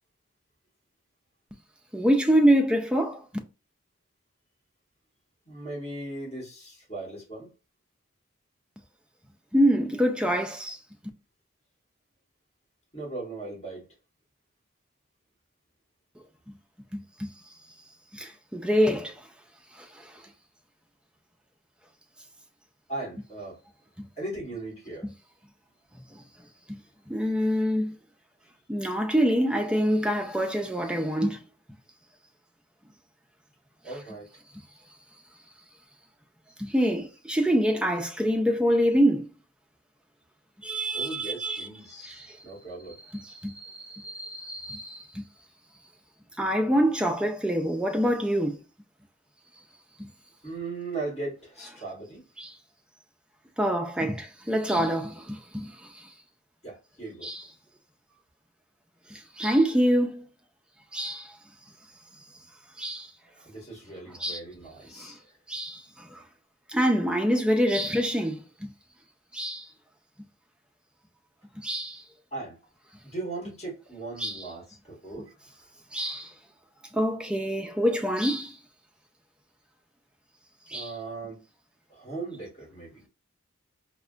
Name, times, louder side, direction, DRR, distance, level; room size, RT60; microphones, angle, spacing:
voice 1, 1.9-3.2 9.5-10.8 16.5-16.6 16.9-17.3 18.1-19.1 19.8-20.2 24.0-24.1 26.1-26.2 26.7-26.8 27.1-28.0 28.7-31.4 36.6-39.3 40.6-41.7 42.0-42.4 43.1-45.2 46.4-48.6 50.0-50.1 52.4-52.6 53.6-56.1 57.2-57.4 59.1-60.3 60.9-61.3 62.8-63.1 64.2-64.4 64.9-65.1 65.5-66.2 66.7-68.7 69.3-69.7 71.6-72.0 74.2-74.4 75.9-76.3 76.9-78.6 80.7-80.9, equal, 5° right, 0.3 m, -26 dB
voice 2, 5.4-7.5 12.9-13.9 22.9-23.6 24.2-25.1 33.8-34.2 40.9-43.0 50.4-52.2 56.6-57.3 63.3-65.2 72.3-72.6 73.0-75.3 76.1-76.3 77.8-78.0 80.7-81.4 81.9-83.1, right 2 dB, 30° left, 1.6 m, -38 dB
4.6 x 2.1 x 2.4 m
head